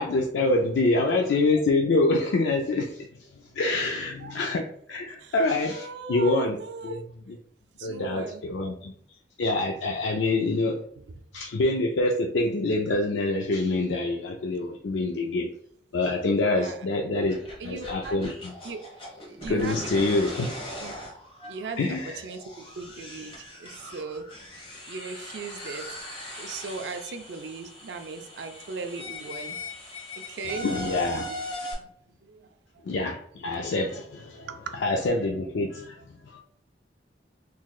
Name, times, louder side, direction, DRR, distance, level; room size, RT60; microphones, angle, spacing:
voice 1, 0.0-3.1 3.5-6.6 6.8-7.0 7.3-7.4 7.8-8.9 9.4-10.7 11.3-15.5 15.9-17.4 17.6-18.5 19.5-20.5 21.8-22.2 30.6-31.3 32.9-34.5 34.8-36.0 36.3-36.4, left 2 dB, 85° left, 1 dB, 0.4 m, -26 dB
voice 2, 5.7-7.0 7.8-8.4 16.6-16.8 17.6-18.2 18.6-18.8 19.3-20.5 20.8-20.9 21.5-24.3 24.9-26.0 26.4-29.6 30.3-30.7 31.3-31.4 31.8-31.9 32.2-32.4 32.7-32.8 34.5-34.7, right 4 dB, 70° right, 7 dB, 0.4 m, -38 dB
sound 1, 17.2-31.7, left 1 dB, 30° left, 1.1 m, -40 dB
3.9 x 3.0 x 2.3 m, 0.65 s
head